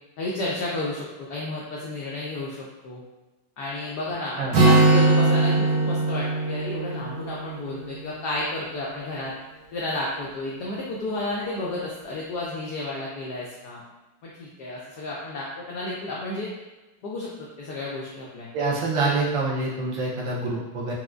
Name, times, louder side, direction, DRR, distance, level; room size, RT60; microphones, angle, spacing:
voice 1, 0.2-3.0 3.6-9.3 9.7-13.8 14.2-16.5 17.0-17.3 17.6-18.5, left 2 dB, 80° left, -5 dB, 0.9 m, -32 dB
Acoustic guitar, 4.5-8.3, right 3 dB, 90° right, 1.8 m, -21 dB
voice 2, 18.5-20.9, right 3 dB, 75° right, -4 dB, 1.3 m, -26 dB
4.4 x 2.1 x 2.4 m, 1.1 s
omnidirectional pair, 2.3 m